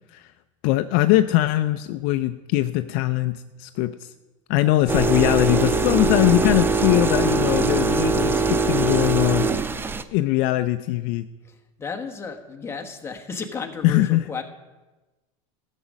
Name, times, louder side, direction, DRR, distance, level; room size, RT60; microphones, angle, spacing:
voice 1, 0.6-4.1 4.5-9.7 10.1-11.3 13.8-14.4, left 15 dB, 55° left, 11 dB, 0.4 m, -21 dB
sound 1, 4.9-10.0, right 4 dB, 15° right, 0.4 m, -22 dB
voice 2, 11.4-14.4, left 5 dB, 15° left, 4 dB, 1.1 m, -34 dB
12.5 x 7.3 x 5.2 m, 1.1 s
supercardioid pair, 130°, 17 cm